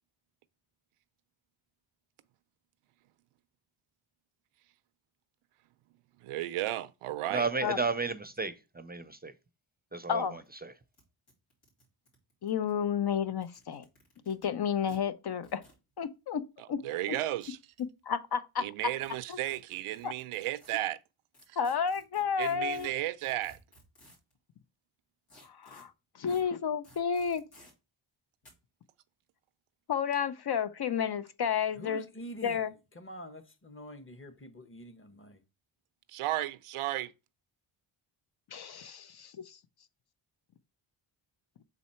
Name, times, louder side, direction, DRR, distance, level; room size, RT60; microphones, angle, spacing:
voice 1, 6.2-7.5 16.6-17.6 18.6-21.0 21.5-21.6 22.4-23.6 36.1-37.1, right 14 dB, 85° right, 0.6 m, -34 dB
voice 2, 7.3-9.3 9.9-10.2 10.6-10.7, right 4 dB, 20° right, 0.6 m, -32 dB
voice 3, 10.1-10.4 12.4-13.9 14.3-15.6 16.0-16.8 17.1-17.2 17.8-18.9 19.3-19.4 20.0-20.1 21.6-22.9 25.4-25.9 26.2-27.4 29.9-32.1 32.4-32.7 38.5-39.6, left 7 dB, 50° left, 0.6 m, -31 dB
sound 1, 10.2-10.3 10.4-10.5 10.9-11.0 11.3-12.7 13.3-14.4 14.9-15.0 15.4-15.8 16.9-17.8 19.0-20.7 21.3-24.3 25.3-25.8 26.3-26.4 26.8-27.7 28.4-28.5, equal, 80° left, 3.2 m, -57 dB
voice 4, 31.8-35.4, equal, 25° left, 1.1 m, -46 dB
5.7 x 4.1 x 4.3 m
cardioid pair, 65°, 50 cm